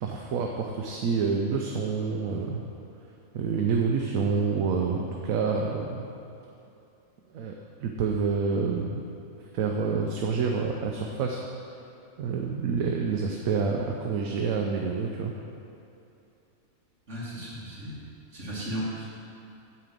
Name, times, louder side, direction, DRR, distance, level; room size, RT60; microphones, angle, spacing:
voice 1, 0.0-2.6 3.3-6.1 7.3-9.1 9.5-11.4 12.2-15.3, right 5 dB, 75° right, 1 dB, 1.1 m, -28 dB
voice 2, 17.1-18.0 18.3-19.1, equal, 55° right, -8 dB, 2.7 m, -35 dB
8.7 x 5.2 x 7.5 m, 2.8 s
omnidirectional pair, 1.5 m